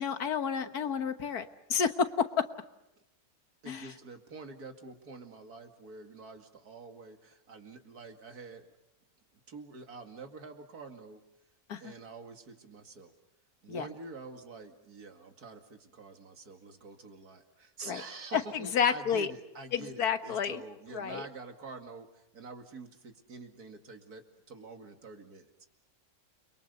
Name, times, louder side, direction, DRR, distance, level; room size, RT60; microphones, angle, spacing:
voice 1, 0.0-2.5 3.7-3.9 11.7-11.9 13.7-13.9 17.9-18.0 18.3-19.3 19.7-20.6 20.9-21.2, left 7 dB, 85° left, 9 dB, 1.8 m, -30 dB
voice 2, 3.6-8.7 9.5-11.2 11.8-13.1 13.6-25.5, right 3 dB, 85° right, 5 dB, 2.7 m, -47 dB
29.5 x 23.0 x 6.8 m, 0.86 s
omnidirectional pair, 1.6 m